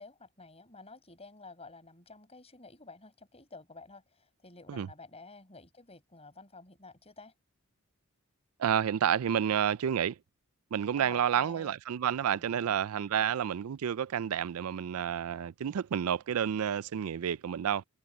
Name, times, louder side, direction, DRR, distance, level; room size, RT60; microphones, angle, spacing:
voice 1, 0.0-7.3 11.0-11.8 12.3-12.8, left 3 dB, 30° left, 5.2 m, -51 dB
voice 2, 8.6-10.2 10.7-17.8, right 8 dB, 85° right, 0.4 m, -30 dB
head